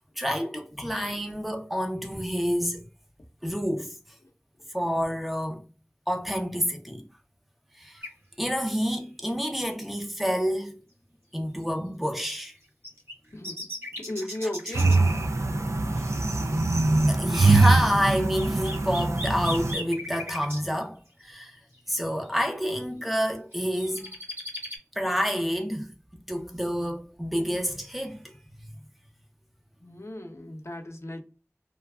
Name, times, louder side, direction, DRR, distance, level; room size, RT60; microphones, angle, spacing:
voice 1, 0.2-2.8 3.4-3.9 4.7-5.6 6.1-7.0 7.8-8.0 8.4-10.7 11.3-12.5 14.6-14.8 17.1-21.6 21.9-24.1 25.0-25.9 26.3-28.3, equal, ahead, 0.6 m, -28 dB
sound 1, 8.0-8.1 12.1-12.2 12.8-15.0 18.1-20.6 21.7-21.8 22.2-22.3 23.5-24.8, left 1 dB, 50° right, 1.5 m, -37 dB
voice 2, 14.1-15.0 29.8-31.2, left 1 dB, 60° left, 0.7 m, -35 dB
sound 2, 14.7-19.7, right 3 dB, 70° right, 0.3 m, -23 dB
3.1 x 2.2 x 2.3 m
wide cardioid pair, 40°, 5 cm